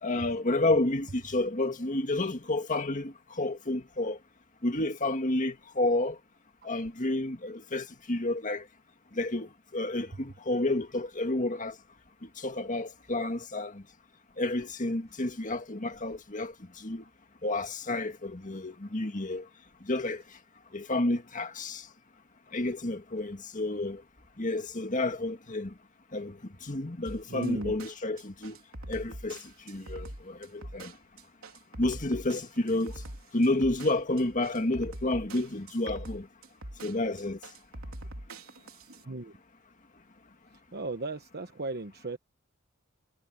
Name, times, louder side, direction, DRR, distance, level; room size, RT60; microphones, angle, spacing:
voice 1, 0.0-4.2 4.6-6.2 6.6-8.7 9.1-11.8 12.4-13.8 14.4-17.0 17.4-19.5 19.8-20.2 20.7-21.9 22.5-24.0 24.4-25.7 26.1-28.6 28.9-30.9 31.8-33.0 33.3-36.3 36.8-37.4, left 2 dB, 40° left, 1.9 m, -30 dB
sound 1, 27.1-39.0, right 1 dB, 80° right, 3.5 m, -43 dB
voice 2, 27.3-27.7 39.1-39.4 40.7-42.2, right 2 dB, 50° right, 1.1 m, -36 dB
head